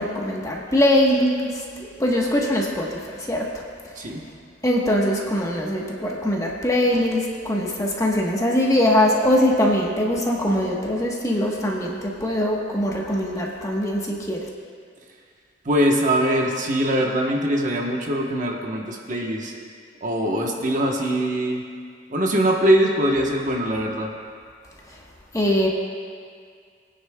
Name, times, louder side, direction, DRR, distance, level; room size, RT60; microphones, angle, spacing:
voice 1, 0.0-3.5 4.6-14.4 24.9-25.0 25.3-25.7, left 1 dB, 20° left, -2 dB, 1.2 m, -22 dB
voice 2, 15.6-19.5 20.0-21.6 22.1-24.1, right 1 dB, 45° right, 0 dB, 1.1 m, -22 dB
22.0 x 9.6 x 2.3 m, 2.1 s
head